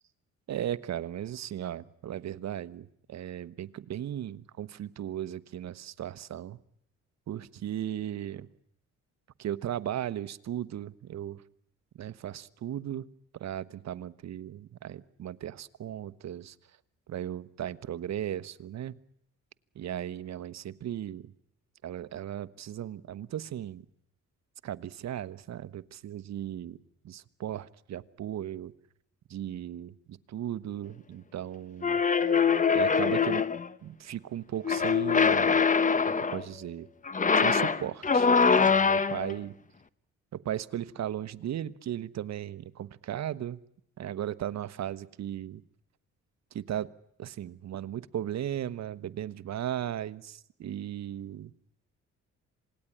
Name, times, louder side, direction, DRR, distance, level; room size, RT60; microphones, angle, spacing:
voice 1, 0.5-6.6 7.3-8.5 9.4-11.4 12.0-13.0 13.4-16.5 17.1-18.9 19.8-21.2 21.8-23.8 24.6-26.8 27.0-28.7 29.3-32.0 32.7-33.4 33.8-35.6 36.2-36.9 37.4-38.3 38.6-39.5 40.3-43.6 44.0-45.6 46.5-46.9 47.2-51.5, right 11 dB, 60° right, 14 dB, 1.1 m, -36 dB
sound 1, 31.8-33.7 34.6-36.4 37.1-39.3, left 5 dB, 25° left, 1.0 m, -23 dB
27.0 x 19.0 x 10.0 m, 0.76 s
cardioid pair, 90°, 30 cm